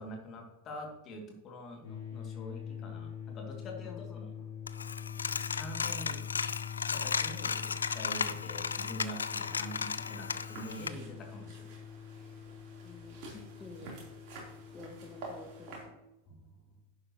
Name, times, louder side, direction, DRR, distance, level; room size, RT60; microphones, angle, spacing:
voice 1, 0.0-4.3 5.5-6.2 6.8-11.7 12.1-12.4 16.3-16.4, equal, 30° left, 1 dB, 2.4 m, -45 dB
sound 1, 1.8-15.9, left 8 dB, 55° left, 3.5 m, -44 dB
voice 2, 3.8-4.5 9.5-10.3 12.8-14.0 14.7-16.0, left 3 dB, 15° left, 2 dB, 1.2 m, -51 dB
Coin (dropping), 4.7-10.9, left 5 dB, 70° left, 0.4 m, -35 dB
sound 2, 10.2-15.8, right 3 dB, 45° right, 3.6 m, -49 dB
11.0 x 9.1 x 3.0 m, 0.96 s
figure-of-eight pair, 90°, 0 cm